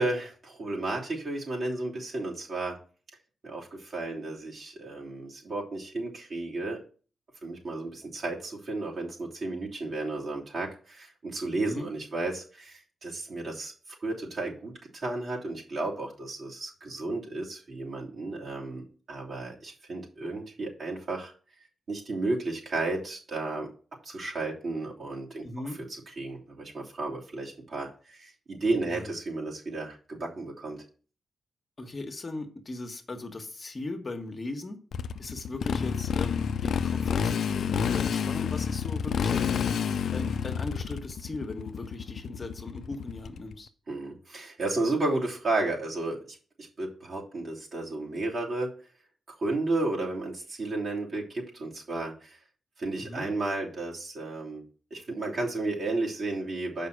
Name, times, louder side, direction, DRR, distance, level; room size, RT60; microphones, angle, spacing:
voice 1, 0.0-2.8 3.4-6.8 7.4-13.7 14.0-21.3 21.9-23.7 24.0-25.7 26.2-30.8 43.9-48.8 49.4-52.4 52.8-54.6 54.9-56.9, right 2 dB, 60° right, -3 dB, 3.1 m, -33 dB
voice 2, 25.4-25.8 28.8-29.1 31.8-34.8 35.2-39.7 40.1-43.7 53.0-53.3, left 2 dB, 40° left, 5 dB, 1.3 m, -38 dB
Motorcycle, 34.9-43.5, left 7 dB, 80° left, 0.5 m, -29 dB
6.7 x 5.4 x 6.2 m, 0.40 s
cardioid pair, 85°, 0 cm